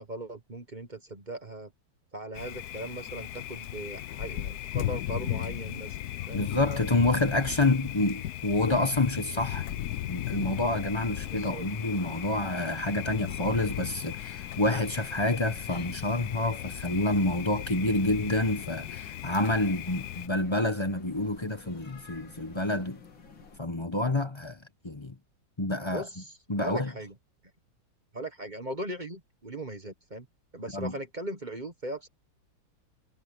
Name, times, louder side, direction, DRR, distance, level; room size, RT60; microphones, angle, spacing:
voice 1, 0.0-1.7 2.1-6.0 6.3-6.4 11.3-11.7 25.9-27.1 28.1-30.3 30.5-32.1, right 1 dB, 25° right, 1.5 m, -39 dB
Thunder, 2.3-20.3, left 13 dB, 65° left, 1.1 m, -36 dB
voice 2, 6.3-9.8 10.1-23.0 23.6-24.6 24.8-25.1 25.6-26.1 26.5-26.9 30.7-30.9, left 2 dB, 20° left, 0.8 m, -28 dB
sound 1, 10.2-23.6, left 5 dB, 85° left, 3.3 m, -51 dB
omnidirectional pair, 2.1 m